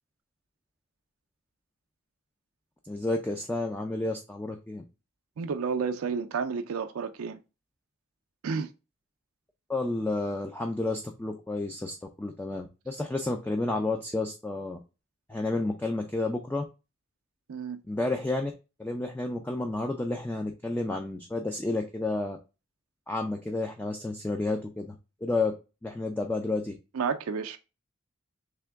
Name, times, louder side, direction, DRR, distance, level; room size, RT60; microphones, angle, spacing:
voice 1, 2.8-4.8 9.7-14.8 15.3-16.6 17.9-18.5 18.8-22.4 23.1-25.5 25.8-26.7, left 2 dB, 10° left, 0.3 m, -31 dB
voice 2, 5.4-7.4 8.4-8.7 17.5-17.8 26.9-27.6, right 5 dB, 80° right, 0.4 m, -31 dB
3.4 x 2.9 x 3.4 m
head